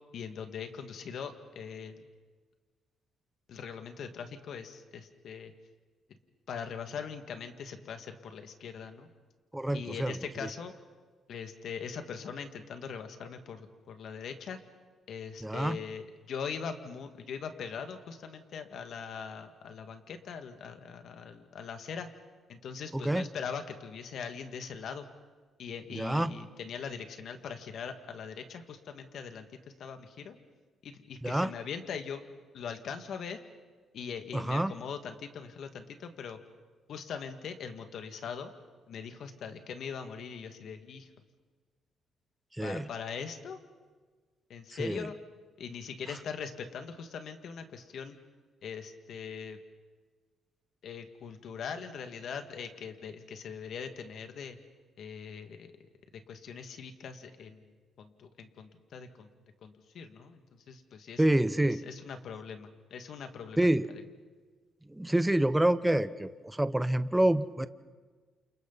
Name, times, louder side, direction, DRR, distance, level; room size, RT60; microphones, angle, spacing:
voice 1, 0.1-2.1 3.5-5.5 6.5-9.1 9.7-10.7 11.3-14.6 15.1-22.1 22.5-25.1 25.6-29.5 29.8-30.4 30.8-32.2 32.5-33.4 33.9-36.4 36.9-38.5 38.9-41.1 42.6-43.6 44.5-45.1 45.6-48.2 48.6-49.6 50.8-54.6 55.0-55.7 56.3-57.7 58.0-59.3 59.6-60.4 60.7-61.2 61.6-63.7, left 6 dB, 65° left, 7 dB, 2.0 m, -41 dB
voice 2, 9.5-10.1 15.4-15.8 22.9-23.3 25.9-26.3 31.2-31.5 34.3-34.7 42.6-42.9 44.8-45.1 61.2-61.8 63.6-63.9 64.9-67.7, right 1 dB, 10° right, 13 dB, 0.8 m, -27 dB
29.0 x 28.0 x 4.1 m, 1.4 s
cardioid pair, 90°, 0 cm